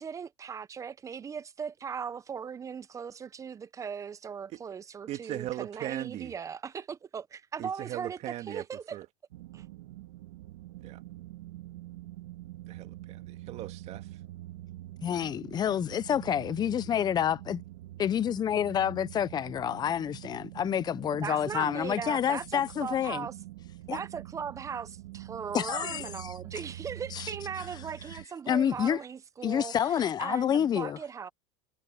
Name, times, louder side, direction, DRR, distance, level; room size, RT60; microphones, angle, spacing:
voice 1, 0.0-8.2 8.5-9.0 9.5-9.7 21.1-23.3 23.9-31.3, right 7 dB, 20° right, 0.8 m, -38 dB
voice 2, 5.1-6.3 7.6-8.6 8.9-9.1 10.8-11.0 12.7-14.1, right 14 dB, 45° right, 2.1 m, -38 dB
sound 1, 9.3-28.3, right 15 dB, 90° right, 2.0 m, -45 dB
voice 3, 15.0-17.6 18.0-23.3 23.9-24.0 25.5-26.3 27.1-27.3 28.5-29.0 29.4-31.0, left 9 dB, 25° left, 0.8 m, -28 dB
supercardioid pair, 125°, 15 cm